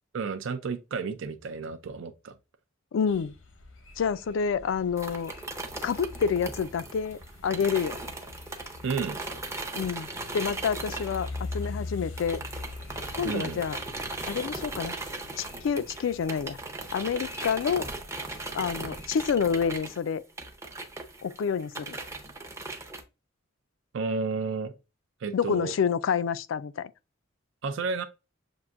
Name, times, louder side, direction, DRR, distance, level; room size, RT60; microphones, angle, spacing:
voice 1, 0.1-2.3 8.8-9.2 13.2-13.6 23.9-24.7 25.2-25.7 27.6-28.0, right 4 dB, 70° right, 0.4 m, -31 dB
voice 2, 2.9-3.3 4.0-5.3 5.8-8.0 9.7-10.1 10.3-11.3 11.5-12.4 13.1-13.8 14.3-14.9 15.4-16.6 16.9-17.9 18.5-20.2 21.2-22.0 25.3-26.9, left 6 dB, 70° left, 0.3 m, -28 dB
sound 1, 3.1-19.8, left 3 dB, 90° left, 0.8 m, -44 dB
sound 2, 5.0-11.9 12.2-23.0, right 2 dB, 15° right, 0.6 m, -38 dB
6.9 x 2.5 x 2.4 m
head